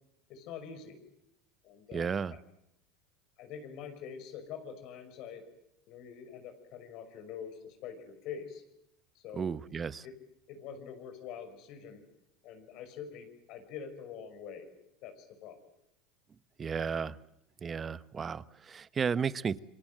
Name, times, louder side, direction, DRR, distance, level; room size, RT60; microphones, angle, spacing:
voice 1, 0.3-1.0 1.6-2.4 3.4-5.5 5.9-8.6 9.1-9.5 10.0-10.1 10.5-12.0 12.4-14.7 15.0-15.6, left 7 dB, 60° left, 6 dB, 5.8 m, -45 dB
voice 2, 1.9-2.4 9.3-10.0 16.6-17.2 17.6-19.6, right 6 dB, 30° right, 16 dB, 1.0 m, -33 dB
28.5 x 24.0 x 7.7 m, 0.80 s
hypercardioid pair, 90°, 0 cm